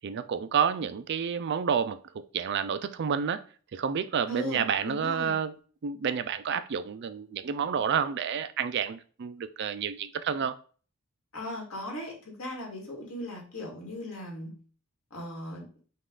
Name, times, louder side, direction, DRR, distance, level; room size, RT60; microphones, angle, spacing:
voice 1, 0.0-2.0 2.3-3.4 3.7-5.5 5.8-10.5, right 7 dB, 55° right, 0.4 m, -29 dB
voice 2, 4.3-5.3 11.3-14.5 15.1-15.7, left 1 dB, 80° left, 1.8 m, -38 dB
5.5 x 2.4 x 3.7 m
head